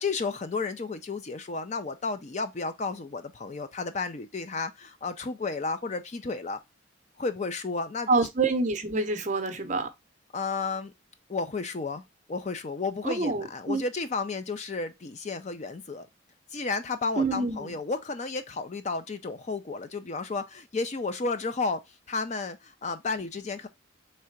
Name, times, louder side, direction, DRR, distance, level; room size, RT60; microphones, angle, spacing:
voice 1, 0.0-6.6 7.2-8.1 10.3-10.9 11.3-12.0 12.3-16.1 16.5-21.8 22.1-23.7, left 4 dB, 35° left, 0.4 m, -32 dB
voice 2, 8.1-9.9 13.0-13.8 17.1-17.8, right 3 dB, 40° right, 0.7 m, -27 dB
3.7 x 3.3 x 4.4 m
head